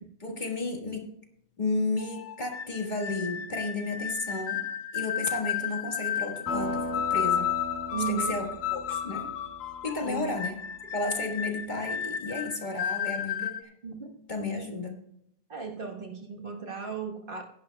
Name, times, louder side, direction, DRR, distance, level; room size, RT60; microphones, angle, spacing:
voice 1, 0.2-1.0 1.6-4.6 4.9-7.5 8.1-9.3 9.8-10.6 10.9-13.7 14.3-15.0, left 3 dB, 45° left, 1 dB, 1.8 m, -33 dB
sound 1, 2.0-13.6, left 9 dB, 75° left, 0.9 m, -33 dB
sound 2, 6.5-10.8, equal, 20° left, 4.6 m, -38 dB
voice 2, 7.9-8.4 10.0-10.4 13.8-14.1 15.5-17.4, right 7 dB, 55° right, 2 dB, 1.5 m, -35 dB
15.5 x 11.0 x 2.3 m, 0.73 s
omnidirectional pair, 1.1 m